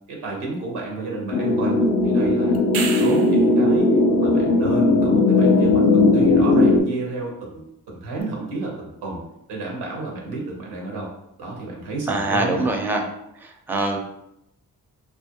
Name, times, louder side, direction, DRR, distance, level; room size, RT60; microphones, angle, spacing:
voice 1, 0.1-1.8 2.0-3.9 4.2-9.2 9.5-11.1 11.4-12.7, right 3 dB, 85° right, -1 dB, 0.8 m, -31 dB
sound 1, 1.3-6.8, left 2 dB, 55° left, 0.4 m, -17 dB
sound 2, 2.5-3.5 8.2-8.3, right 6 dB, 65° right, 0.5 m, -30 dB
voice 2, 12.1-13.0 13.4-14.0, right 2 dB, 5° right, 3 dB, 0.4 m, -23 dB
2.3 x 2.1 x 2.8 m, 0.81 s
supercardioid pair, 45°, 39 cm